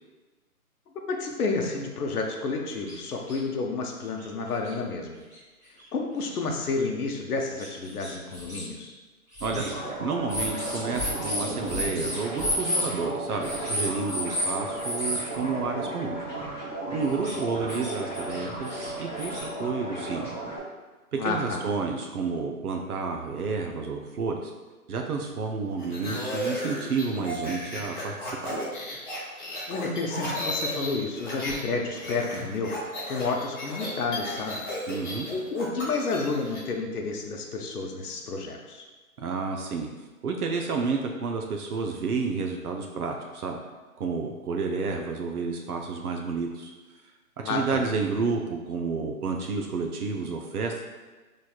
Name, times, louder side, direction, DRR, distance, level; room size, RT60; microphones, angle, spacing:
voice 1, 1.1-5.2 5.9-8.9 21.1-21.6 29.7-34.6 35.3-38.9 47.4-47.8, left 3 dB, 75° left, 1 dB, 0.7 m, -30 dB
sound 1, 2.9-3.0 3.3-3.4 4.2-4.3 4.6-4.7 5.3-5.4 6.3-6.4 6.8-6.9 7.6-8.6 9.3-9.7 10.3-12.9 13.4-14.5 14.8-15.2 17.0-17.3 17.7-18.4 18.6-19.4, left 1 dB, 10° right, 1.1 m, -31 dB
voice 2, 9.4-16.2 16.9-20.3 21.1-24.5 24.9-28.6 34.9-35.3 39.2-39.9 40.2-43.6 44.0-46.7 47.4-50.8, right 4 dB, 75° right, 2 dB, 0.6 m, -30 dB
sound 2, 9.5-20.6, right 1 dB, 15° left, 1.2 m, -35 dB
sound 3, 25.8-31.6 31.9-36.6, left 1 dB, 35° left, 0.9 m, -34 dB
4.2 x 3.1 x 2.3 m, 1.2 s
hypercardioid pair, 165°, 45 cm